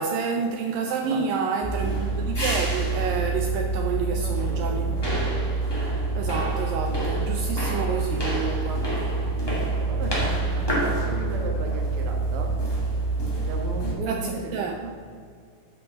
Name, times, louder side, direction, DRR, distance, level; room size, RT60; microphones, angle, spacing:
voice 1, 0.0-5.5 6.1-8.9 14.1-14.8, right 5 dB, 80° right, 3 dB, 2.1 m, -29 dB
sound 1, 1.6-13.9, right 2 dB, 15° left, 0.7 m, -26 dB
voice 2, 4.1-5.1 9.8-12.5 13.4-14.9, right 2 dB, 60° right, 2 dB, 1.5 m, -36 dB
8.1 x 7.4 x 6.3 m, 2.2 s
omnidirectional pair, 4.4 m